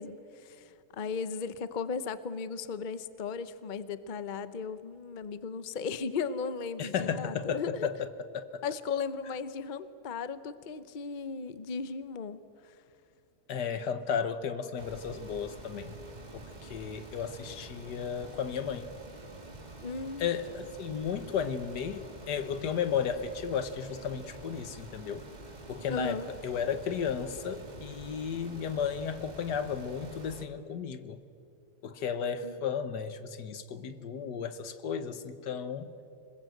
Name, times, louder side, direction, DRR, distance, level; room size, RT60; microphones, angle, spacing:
voice 1, 0.0-7.9 8.6-12.8 19.8-20.3 25.9-26.3 32.4-32.6, left 5 dB, 40° left, 13 dB, 0.7 m, -36 dB
voice 2, 6.8-8.1 8.3-8.6 13.5-16.0 16.3-18.9 20.2-25.3 25.7-31.2 31.8-35.9, left 7 dB, 80° left, 11 dB, 1.7 m, -34 dB
sound 1, 14.8-30.4, right 2 dB, 25° right, 1.6 m, -48 dB
26.0 x 20.5 x 7.9 m, 2.5 s
omnidirectional pair, 1.8 m